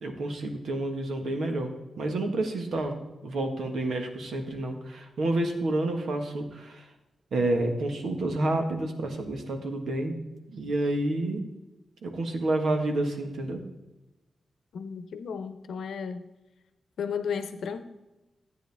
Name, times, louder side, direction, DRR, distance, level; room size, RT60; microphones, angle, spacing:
voice 1, 0.0-1.7 2.0-3.0 3.2-6.8 7.3-10.1 10.5-11.4 12.0-13.6, right 2 dB, 65° right, 4 dB, 1.5 m, -29 dB
voice 2, 14.7-16.2 17.0-17.8, left 6 dB, 80° left, 10 dB, 0.8 m, -34 dB
13.5 x 8.9 x 3.5 m, 1.0 s
wide cardioid pair, 175°, 0 cm